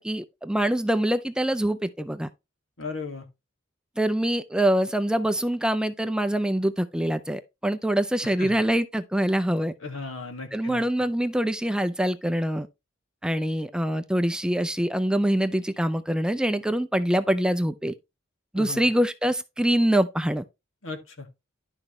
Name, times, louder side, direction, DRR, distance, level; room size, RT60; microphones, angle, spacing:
voice 1, 0.0-2.3 4.0-9.7 10.5-12.7 13.2-17.9 18.5-20.4, right 1 dB, 5° right, 0.4 m, -24 dB
voice 2, 2.8-3.3 8.2-8.6 9.8-10.8 18.6-18.8 20.8-21.3, left 3 dB, 75° left, 2.0 m, -36 dB
11.0 x 6.0 x 3.1 m
head